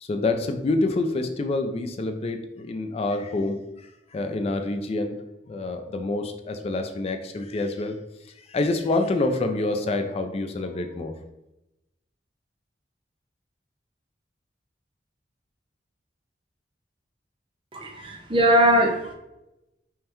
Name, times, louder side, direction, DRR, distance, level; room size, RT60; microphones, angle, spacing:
voice 1, 0.0-3.6 4.1-5.2 5.5-7.9 8.5-11.1, left 2 dB, 35° left, 6 dB, 0.3 m, -27 dB
voice 2, 17.7-19.1, right 1 dB, 30° right, 2 dB, 0.6 m, -20 dB
5.4 x 2.1 x 2.9 m, 0.92 s
head